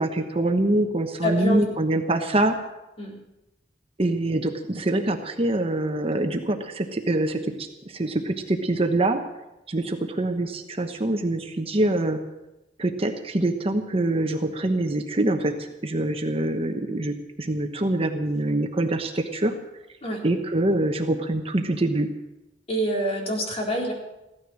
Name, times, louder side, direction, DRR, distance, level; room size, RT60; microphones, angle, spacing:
voice 1, 0.0-2.6 4.0-9.2 9.7-12.2 12.8-15.5 15.8-19.5 20.2-22.1, right 1 dB, 35° right, 5 dB, 1.1 m, -25 dB
voice 2, 1.2-1.6 3.0-3.2 20.0-20.2 22.7-23.9, equal, 35° left, -1 dB, 3.9 m, -26 dB
16.0 x 13.0 x 6.3 m, 0.96 s
head